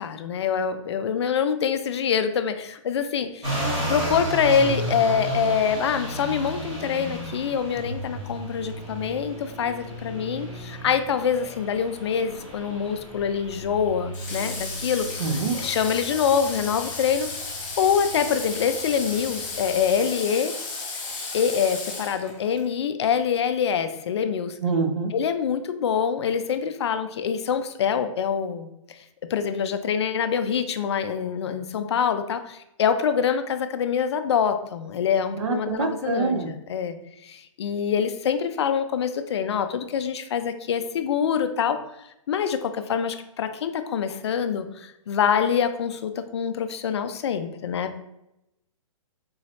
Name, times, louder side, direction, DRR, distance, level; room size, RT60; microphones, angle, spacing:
voice 1, 0.0-3.5 3.9-15.1 15.6-17.3 17.8-20.5 21.3-24.6 25.1-29.0 29.3-36.4 36.7-37.0 37.2-41.8 42.3-48.0, left 7 dB, 50° left, 9 dB, 0.4 m, -25 dB
sound 1, 3.4-19.9, right 1 dB, 20° right, 1.1 m, -34 dB
Water / Water tap faucet, 14.1-22.6, left 3 dB, 35° left, 1.1 m, -34 dB
voice 2, 15.2-15.6 24.6-25.1 35.4-36.5, right 4 dB, 60° right, 5 dB, 0.6 m, -25 dB
3.8 x 2.8 x 3.0 m, 0.86 s
hypercardioid pair, 170°, 17 cm